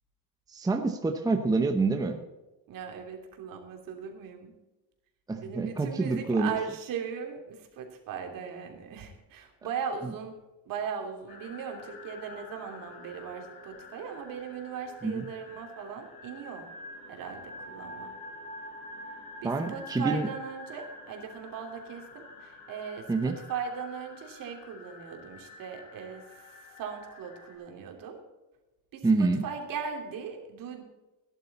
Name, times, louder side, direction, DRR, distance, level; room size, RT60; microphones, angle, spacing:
voice 1, 0.5-2.2 5.3-6.6 10.0-10.1 15.0-15.3 19.4-20.3 23.1-23.4 29.0-29.4, right 3 dB, 10° right, 5 dB, 0.9 m, -27 dB
voice 2, 2.7-4.5 5.4-10.4 10.6-16.7 17.1-18.1 19.4-28.2 28.9-30.8, right 7 dB, 60° right, 3 dB, 3.1 m, -38 dB
sound 1, 11.3-27.5, left 2 dB, 90° left, 4.9 m, -47 dB
17.0 x 11.0 x 4.2 m, 1.1 s
cardioid pair, 160°, 38 cm